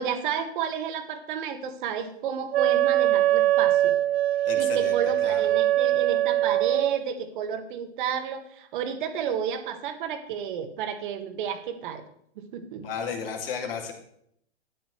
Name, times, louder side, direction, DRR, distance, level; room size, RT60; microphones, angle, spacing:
voice 1, 0.0-4.0 4.5-12.0 12.4-12.8, right 7 dB, 45° right, 6 dB, 1.6 m, -31 dB
Wind instrument woodwind instrument, 2.5-7.0, right 13 dB, 60° right, 0.5 m, -22 dB
voice 2, 4.4-5.0 5.2-5.4 12.8-13.9, left 6 dB, 55° left, 3 dB, 2.6 m, -33 dB
13.0 x 10.0 x 3.3 m, 0.71 s
hypercardioid pair, 130°, 35 cm